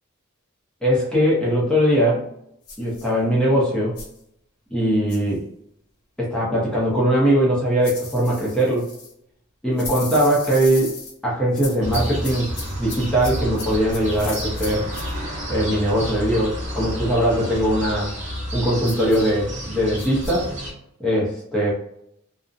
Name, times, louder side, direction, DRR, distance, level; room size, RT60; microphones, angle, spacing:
voice 1, 0.8-2.2 2.8-4.0 4.7-5.4 6.2-8.9 9.6-10.9 11.2-12.5 12.8-14.9 15.5-18.1 18.5-20.5 21.0-21.7, equal, 5° left, -6 dB, 0.6 m, -20 dB
sound 1, 2.7-3.1 4.0-4.2 5.1-5.3 7.8-9.1 9.8-11.1 11.5-15.1 18.8-19.3 20.0-20.4, left 4 dB, 90° left, 0.8 m, -37 dB
sound 2, 11.8-20.7, equal, 30° right, 1.0 m, -30 dB
2.5 x 2.0 x 2.5 m, 0.75 s
head